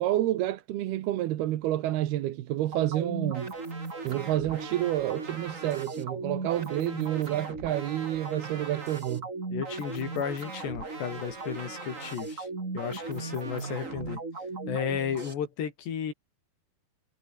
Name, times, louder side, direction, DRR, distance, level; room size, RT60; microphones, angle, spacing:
voice 1, 0.0-3.5 4.0-9.3, right 14 dB, 75° right, 3.1 m, -29 dB
sound 1, 2.7-15.3, right 3 dB, 20° right, 3.0 m, -37 dB
voice 2, 9.5-12.5 12.7-14.2 14.7-16.1, left 8 dB, 90° left, 5.7 m, -33 dB
omnidirectional pair, 4.8 m